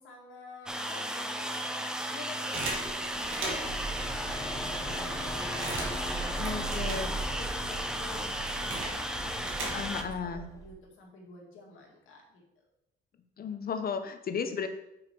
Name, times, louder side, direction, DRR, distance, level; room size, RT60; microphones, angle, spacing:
voice 1, 0.0-1.6 2.1-3.0 3.4-6.9 7.2-12.7, left 3 dB, 85° left, -1 dB, 1.9 m, -50 dB
sound 1, 0.7-10.0, equal, 5° right, 0.7 m, -35 dB
sound 2, 2.5-3.9 4.5-4.6 4.8-7.5 7.7-10.1, right 3 dB, 90° right, 1.7 m, -39 dB
sound 3, 3.6-10.7, right 1 dB, 15° left, 1.1 m, -39 dB
voice 2, 6.4-7.1 9.6-10.4 13.4-14.7, left 6 dB, 50° left, 8 dB, 0.8 m, -34 dB
5.8 x 4.8 x 4.5 m, 0.83 s
cardioid pair, 90°, 20 cm